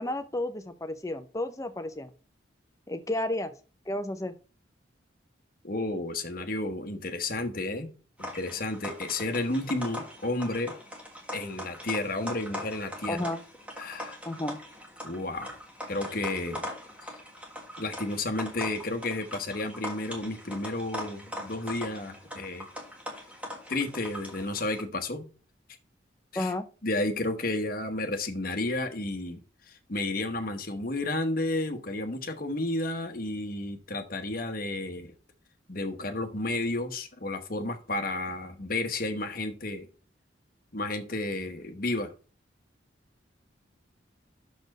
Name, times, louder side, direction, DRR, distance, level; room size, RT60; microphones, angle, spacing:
voice 1, 0.0-2.1 2.9-3.5 3.9-4.3 13.1-13.4 14.3-14.6 26.3-26.6, left 1 dB, 15° left, 0.6 m, -32 dB
voice 2, 5.6-7.9 8.2-10.7 11.3-13.2 13.8-14.2 15.0-15.6 15.9-16.6 17.8-22.7 23.7-25.2 26.3-26.5 26.8-29.4 29.7-35.1 35.7-39.9 40.7-42.1, left 2 dB, 50° left, 1.1 m, -32 dB
sound 1, 8.2-24.8, equal, 5° right, 1.5 m, -41 dB
6.3 x 4.3 x 6.5 m
head